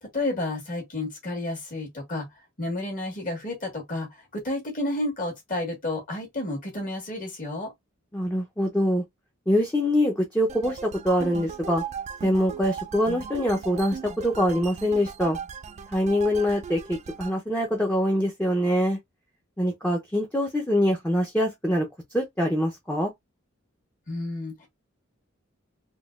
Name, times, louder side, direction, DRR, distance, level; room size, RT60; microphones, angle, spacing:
voice 1, 0.0-2.3 2.6-4.1 4.3-7.7 24.1-24.7, left 2 dB, 45° left, 1.5 m, -31 dB
voice 2, 8.1-9.0 9.5-11.8 12.2-15.4 15.9-19.0 19.6-21.9 22.1-23.1, equal, 10° left, 0.6 m, -24 dB
sound 1, 10.5-17.4, right 6 dB, 35° right, 0.3 m, -38 dB
3.7 x 2.3 x 2.3 m
head